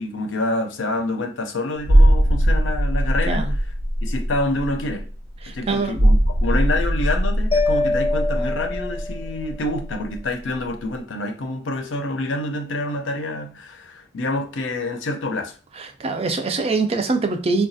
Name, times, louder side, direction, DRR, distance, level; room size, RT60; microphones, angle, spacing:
voice 1, 0.0-3.7 4.0-5.1 5.5-15.6, left 2 dB, 75° left, 0.5 m, -27 dB
sound 1, 1.9-10.3 10.5-10.7, equal, 85° right, 0.6 m, -20 dB
voice 2, 5.5-6.0 16.0-17.7, right 3 dB, 30° right, 0.4 m, -23 dB
Mallet percussion, 7.5-9.6, left 2 dB, 25° left, 0.5 m, -24 dB
4.0 x 2.2 x 2.6 m
head